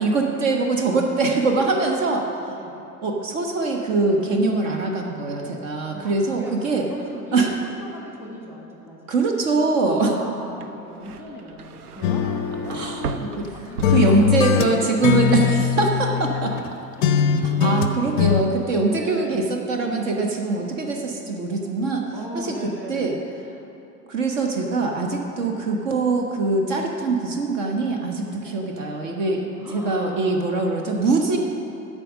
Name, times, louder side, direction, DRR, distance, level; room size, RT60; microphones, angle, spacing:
voice 1, 0.0-2.2 3.0-6.9 7.3-7.5 9.1-10.1 12.7-13.5 13.9-16.5 17.4-22.0 22.3-23.2 24.1-31.4, right 3 dB, 50° right, 2 dB, 1.2 m, -23 dB
voice 2, 2.5-2.8 5.9-9.0 9.9-15.0 17.4-17.7 18.9-19.4 22.1-23.2 25.4-25.5 28.4-28.6 29.6-30.5, equal, 5° right, -2 dB, 1.3 m, -38 dB
sound 1, 10.5-14.8 15.1-15.6, right 5 dB, 65° right, 0.7 m, -36 dB
sound 2, 12.0-13.5 13.8-16.7 17.0-18.4, left 7 dB, 35° left, 0.5 m, -21 dB
12.5 x 5.0 x 6.4 m, 2.7 s
figure-of-eight pair, 90°, 48 cm